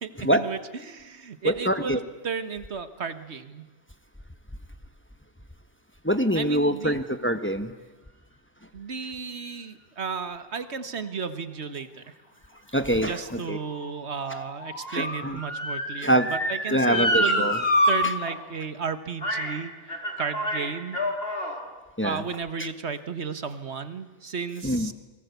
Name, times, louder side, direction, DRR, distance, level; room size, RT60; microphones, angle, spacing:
voice 1, 0.0-0.6 0.8-3.6 6.3-7.0 8.7-12.1 12.9-17.5 17.9-21.0 22.0-24.9, right 5 dB, 85° right, 11 dB, 1.7 m, -34 dB
voice 2, 1.4-2.0 6.0-7.7 12.7-13.6 14.9-15.4 16.0-16.3 16.7-17.6 18.0-18.1 22.0-22.2 22.6-22.7 24.6-24.9, right 1 dB, 10° left, 9 dB, 1.1 m, -24 dB
Motor vehicle (road) / Siren, 12.7-17.9 18.3-18.4 19.2-19.6 19.9-21.6 22.3-22.4, equal, 65° left, 4.3 m, -27 dB
28.5 x 22.5 x 8.3 m, 1.1 s
omnidirectional pair, 1.1 m